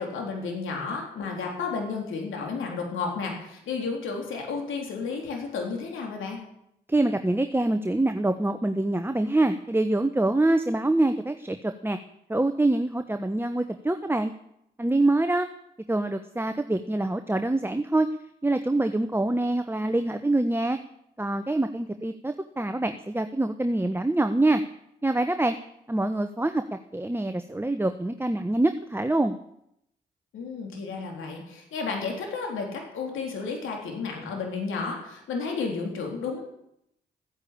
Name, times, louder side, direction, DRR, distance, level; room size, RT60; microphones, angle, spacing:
voice 1, 0.0-6.4 30.3-36.4, left 4 dB, 75° left, 1 dB, 3.7 m, -32 dB
voice 2, 6.9-12.0 12.3-14.3 14.8-15.5 15.9-18.1 18.4-20.8 21.2-24.6 25.0-25.5 25.9-26.6 26.9-29.4, right 2 dB, 10° right, 8 dB, 1.0 m, -25 dB
14.5 x 9.7 x 8.6 m, 0.78 s
hypercardioid pair, 40°, 20 cm